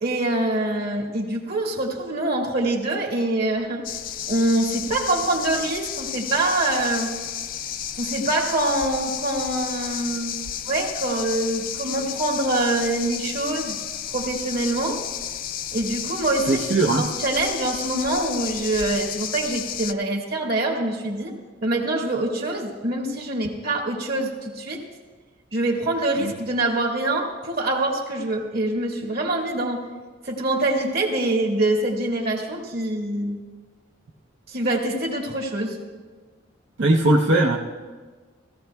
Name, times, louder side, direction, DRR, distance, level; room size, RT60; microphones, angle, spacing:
voice 1, 0.0-3.8 4.3-7.1 8.0-10.4 10.7-13.8 14.1-15.0 15.7-16.6 17.0-21.3 21.6-24.8 25.5-29.8 30.2-33.4 34.5-35.8, right 2 dB, 55° right, 0 dB, 1.9 m, -25 dB
sound 1, 3.8-19.9, left 10 dB, 45° left, 0.4 m, -32 dB
voice 2, 16.5-17.0 26.2-26.3 36.8-37.6, right 2 dB, 80° right, -1 dB, 0.7 m, -19 dB
16.5 x 15.0 x 2.3 m, 1.4 s
head